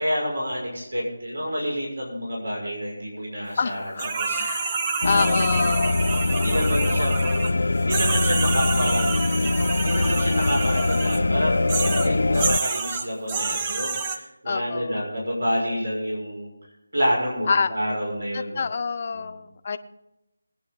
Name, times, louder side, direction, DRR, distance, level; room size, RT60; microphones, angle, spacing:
voice 1, 0.0-3.9 4.2-4.4 5.1-5.5 6.3-7.3 7.8-9.2 9.7-16.5 16.9-18.7 19.1-19.3, equal, 85° right, -2 dB, 5.9 m, -28 dB
voice 2, 3.6-6.0 14.4-15.0 17.5-17.8 18.3-19.8, left 5 dB, 40° left, 10 dB, 0.8 m, -27 dB
sound 1, 4.0-7.5 7.9-11.2 11.7-14.2, right 4 dB, 20° right, 0.9 m, -28 dB
sound 2, 5.0-12.6, left 2 dB, 70° left, 0.4 m, -23 dB
21.0 x 9.8 x 3.9 m, 0.93 s
figure-of-eight pair, 165°, 0 cm